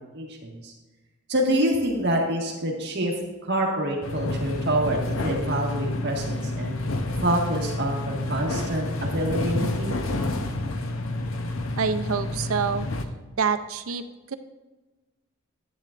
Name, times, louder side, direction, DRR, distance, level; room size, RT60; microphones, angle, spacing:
voice 1, 0.1-0.7 1.3-3.1 3.4-6.7 7.2-10.0, right 1 dB, 50° right, 0 dB, 1.6 m, -26 dB
sound 1, 4.0-13.0, left 2 dB, 65° left, 0.8 m, -29 dB
voice 2, 11.8-12.9 13.4-14.3, right 6 dB, 75° right, 10 dB, 0.6 m, -26 dB
10.5 x 9.5 x 2.5 m, 1.2 s
head